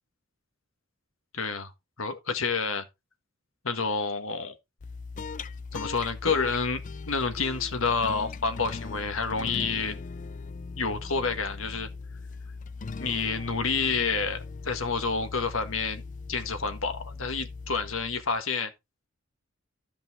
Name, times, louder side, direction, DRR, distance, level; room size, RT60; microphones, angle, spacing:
voice 1, 1.3-1.7 2.0-2.8 3.6-4.5 5.7-6.8 7.1-10.0 10.7-11.9 13.0-16.0 16.3-18.7, left 4 dB, 85° left, 1.6 m, -29 dB
sound 1, 4.8-18.4, left 4 dB, 40° left, 0.4 m, -39 dB
13.0 x 5.5 x 3.7 m
head